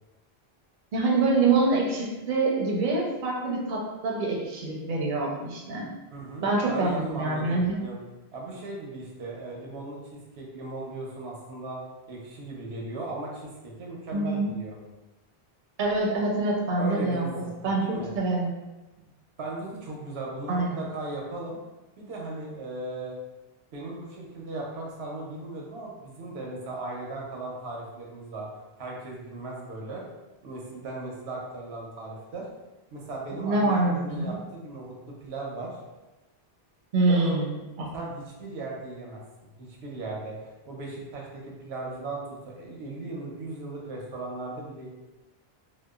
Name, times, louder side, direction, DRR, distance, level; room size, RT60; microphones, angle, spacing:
voice 1, 0.9-5.9 6.4-7.8 14.1-14.5 15.8-17.9 18.1-18.5 20.5-20.8 33.4-34.4 36.9-37.5 37.8-37.9, right 3 dB, 60° right, -2 dB, 0.7 m, -25 dB
voice 2, 6.1-8.0 8.3-11.8 12.1-14.8 16.8-17.5 17.8-18.1 19.4-21.6 22.0-23.1 23.7-28.5 28.8-30.0 30.4-32.5 32.9-35.8 37.1-37.4 37.9-39.2 39.6-44.9, right 2 dB, 85° right, -2 dB, 0.9 m, -37 dB
2.8 x 2.1 x 2.2 m, 1.1 s
omnidirectional pair, 1.0 m